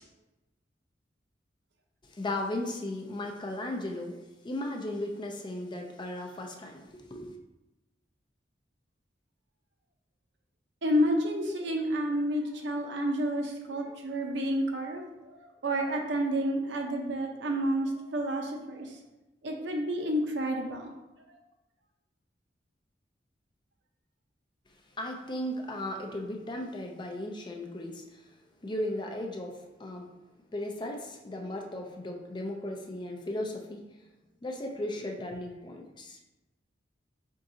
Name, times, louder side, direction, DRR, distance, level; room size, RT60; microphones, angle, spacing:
voice 1, 2.1-7.4 25.0-28.2 28.6-30.2 30.5-33.8 34.4-36.2, left 1 dB, 25° left, 2 dB, 0.5 m, -36 dB
voice 2, 10.8-18.9 19.4-20.9, equal, 75° right, 2 dB, 0.7 m, -30 dB
4.6 x 3.8 x 2.7 m, 1.0 s
head